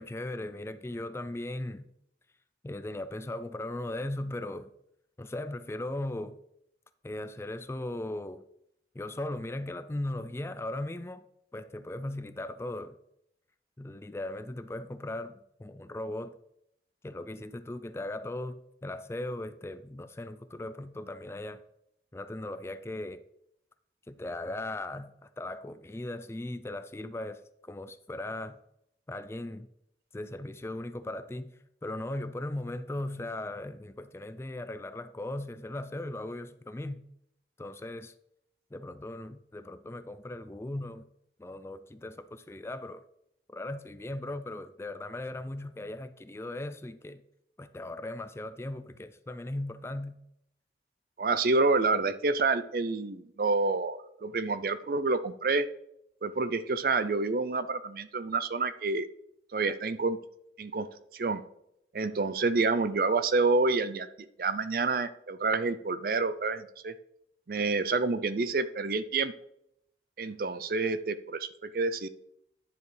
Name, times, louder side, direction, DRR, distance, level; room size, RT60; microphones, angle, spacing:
voice 1, 0.0-1.9 2.6-4.7 5.2-6.4 7.0-8.4 8.9-11.2 11.5-13.0 13.8-16.3 17.0-21.6 22.1-23.2 24.1-28.6 29.1-29.7 30.1-31.5 31.8-37.0 37.6-38.1 38.7-41.1 41.4-43.0 43.5-47.2 47.6-50.2, left 1 dB, 15° left, 12 dB, 0.3 m, -38 dB
voice 2, 51.2-55.7 56.2-59.1 59.5-60.2 60.6-60.9 61.1-61.4 61.9-64.1 64.4-66.9 67.5-69.3 70.2-72.1, right 3 dB, 55° right, 13 dB, 0.5 m, -28 dB
10.0 x 6.9 x 3.3 m, 0.78 s
head